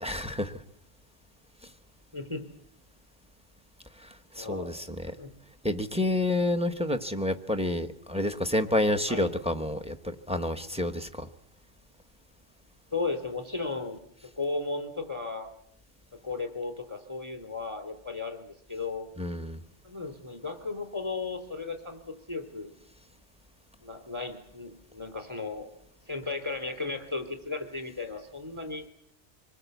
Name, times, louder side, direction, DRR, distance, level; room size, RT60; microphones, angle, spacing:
voice 1, 0.0-0.5 4.0-4.1 4.4-5.1 5.6-11.3 19.2-19.6, left 1 dB, 5° right, 1.1 m, -29 dB
voice 2, 4.4-4.7 5.0-5.3 9.1-9.3 12.9-14.0 14.4-15.5 16.2-19.1 19.8-22.0 22.3-22.7 23.8-25.7 26.1-28.9, left 3 dB, 25° right, 3.6 m, -35 dB
25.5 x 20.0 x 8.2 m
omnidirectional pair, 1.2 m